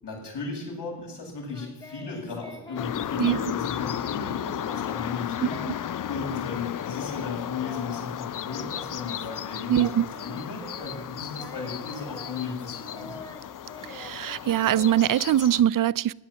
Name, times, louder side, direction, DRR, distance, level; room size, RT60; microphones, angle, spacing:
voice 1, 0.0-5.5 6.1-13.1, left 4 dB, 65° left, 7.8 m, -35 dB
Singing, 1.5-9.5 9.7-15.6, left 1 dB, 10° left, 2.9 m, -46 dB
sound 1, 2.8-15.6, left 10 dB, 45° left, 0.6 m, -34 dB
voice 2, 5.4-5.7 9.7-10.1 13.9-16.1, right 11 dB, 50° right, 0.5 m, -23 dB
16.0 x 10.5 x 7.7 m
supercardioid pair, 45°, 45 cm